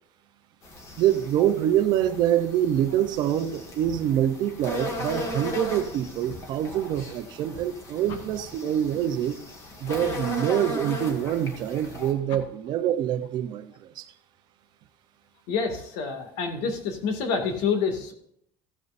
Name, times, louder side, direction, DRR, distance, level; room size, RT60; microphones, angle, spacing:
sound 1, 0.6-12.1, left 2 dB, 25° left, 2.0 m, -37 dB
voice 1, 1.0-9.4 9.8-14.1, right 11 dB, 40° right, 0.8 m, -25 dB
voice 2, 15.5-18.1, left 5 dB, 70° left, 2.2 m, -27 dB
14.5 x 9.5 x 2.6 m
cardioid pair, 180°, 11 cm